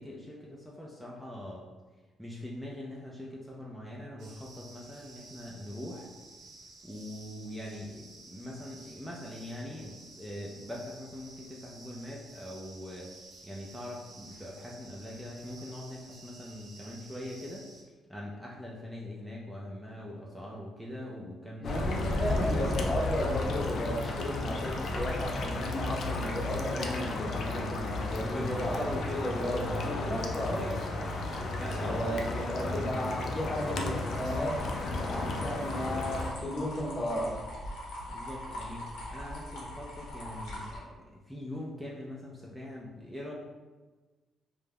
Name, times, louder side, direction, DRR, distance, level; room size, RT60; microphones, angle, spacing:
voice 1, 0.0-1.7 1.9-6.1 6.8-22.0 22.3-22.9 28.1-33.1 38.0-43.3, left 1 dB, 5° right, -4 dB, 0.4 m, -42 dB
sound 1, 4.2-17.8, right 2 dB, 60° right, 0.5 m, -52 dB
sound 2, 21.6-36.3, left 2 dB, 60° left, 0.4 m, -33 dB
voice 2, 21.6-28.8 29.2-30.7 31.8-37.4, equal, 30° left, -2 dB, 0.7 m, -34 dB
sound 3, 33.4-40.8, left 1 dB, 85° left, 0.7 m, -42 dB
2.4 x 2.1 x 3.3 m, 1.3 s
cardioid pair, 90°, 0 cm